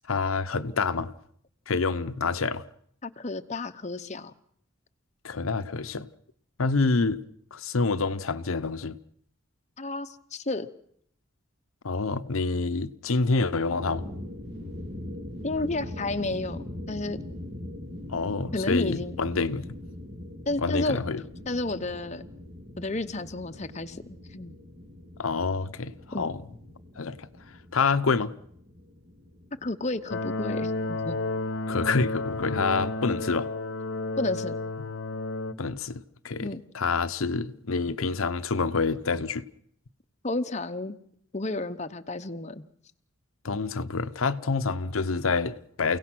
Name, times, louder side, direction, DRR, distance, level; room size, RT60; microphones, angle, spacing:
voice 1, 0.1-1.1 1.7-2.6 5.2-6.1 6.6-7.2 7.5-9.0 11.8-14.0 18.1-19.7 20.6-21.2 25.2-26.4 27.0-27.3 27.7-28.3 31.7-33.5 35.6-39.4 43.4-46.0, left 4 dB, 90° left, 0.8 m, -27 dB
voice 2, 3.0-4.3 9.8-10.7 15.4-17.2 18.5-19.2 20.5-21.0 21.5-22.2 22.8-24.5 26.1-26.3 29.6-31.2 34.2-34.6 36.4-36.6 40.2-41.0 41.3-42.6, left 2 dB, 35° left, 0.8 m, -31 dB
sound 1, 13.6-32.4, left 1 dB, 50° right, 4.4 m, -42 dB
sound 2, 30.1-35.5, left 2 dB, 60° left, 1.0 m, -31 dB
29.0 x 17.0 x 6.2 m
head